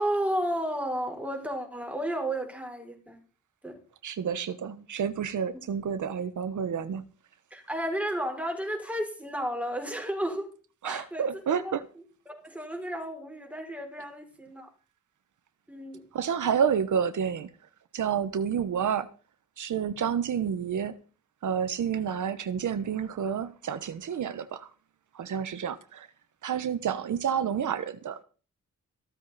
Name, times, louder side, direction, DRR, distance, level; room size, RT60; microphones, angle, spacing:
voice 1, 0.0-3.2 3.6-3.8 7.5-10.5 10.8-11.2 11.6-11.8 12.3-14.7 15.7-16.1, right 1 dB, 5° right, 4.4 m, -32 dB
voice 2, 4.0-7.0 10.8-11.8 16.1-17.5 17.9-19.1 19.6-21.0 21.4-24.7 25.1-26.1 26.4-28.2, right 7 dB, 80° right, 1.2 m, -29 dB
15.0 x 13.0 x 4.2 m
wide cardioid pair, 150°, 30 cm